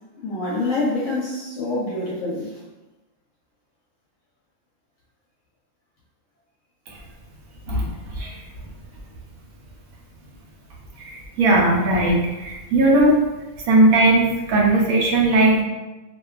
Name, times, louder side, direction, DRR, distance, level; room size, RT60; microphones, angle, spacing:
voice 1, 0.2-2.6, left 2 dB, 70° left, -6 dB, 0.9 m, -26 dB
voice 2, 11.0-13.2 13.7-15.6, right 2 dB, 85° right, -2 dB, 1.0 m, -18 dB
2.5 x 2.2 x 2.3 m, 1.1 s
omnidirectional pair, 1.5 m